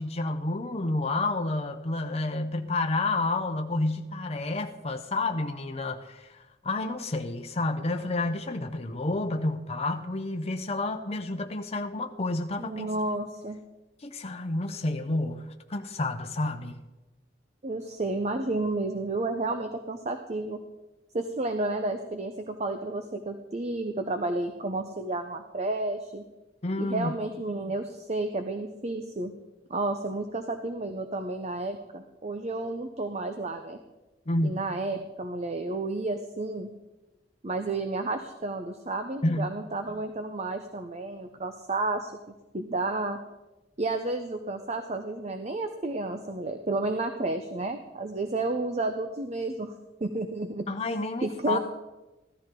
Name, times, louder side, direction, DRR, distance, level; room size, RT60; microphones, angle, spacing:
voice 1, 0.0-12.9 14.0-15.4 15.7-16.8 26.6-27.1 34.3-34.6 39.2-39.5 50.7-51.6, left 2 dB, 35° left, 4 dB, 0.8 m, -30 dB
voice 2, 12.6-13.6 17.6-20.6 21.1-26.2 26.8-29.3 29.7-33.8 34.4-36.7 37.4-42.1 42.5-43.2 43.8-49.7 50.0-50.7 51.2-51.6, right 2 dB, 40° right, 7 dB, 0.8 m, -31 dB
15.5 x 13.5 x 3.8 m, 1.1 s
head